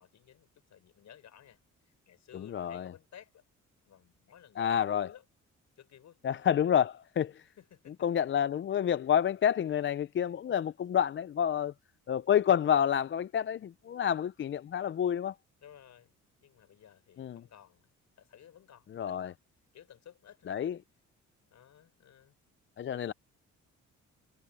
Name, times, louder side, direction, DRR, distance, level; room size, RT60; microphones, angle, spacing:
voice 1, 0.0-1.6 1.8-3.4 3.9-5.2 5.8-6.2 7.6-8.0 15.6-16.1 16.4-17.9 18.2-19.4 19.7-20.8 21.5-22.4, left 10 dB, 65° left, 6.1 m, -55 dB
voice 2, 2.3-2.9 4.6-5.1 6.2-7.5 8.0-11.7 12.1-15.3 17.2-17.4 18.9-19.3 20.5-20.8 22.8-23.1, left 9 dB, 40° left, 0.5 m, -29 dB
cardioid pair, 90°, 30 cm